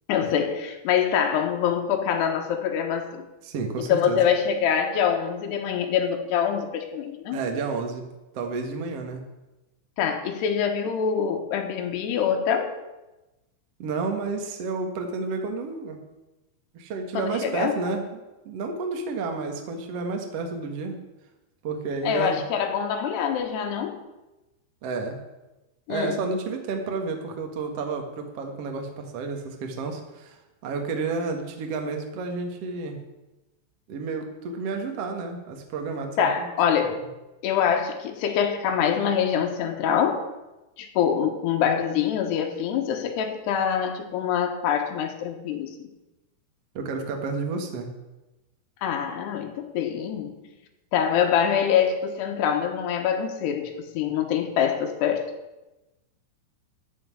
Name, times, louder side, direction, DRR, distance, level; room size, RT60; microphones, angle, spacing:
voice 1, 0.1-3.3 3.9-7.4 10.0-12.7 17.1-17.7 22.0-24.0 25.9-26.2 36.2-37.0 37.4-40.3 40.8-45.9 48.8-50.4 50.9-55.3, left 8 dB, 70° left, 4 dB, 3.2 m, -25 dB
voice 2, 3.4-4.2 7.3-8.0 8.3-9.3 13.8-16.0 16.7-18.2 18.4-21.0 21.6-22.4 24.8-25.2 25.9-30.4 30.6-33.0 33.9-36.5 46.7-47.9, right 4 dB, 60° right, 3 dB, 1.6 m, -30 dB
13.5 x 5.9 x 9.7 m, 1.0 s
omnidirectional pair, 5.3 m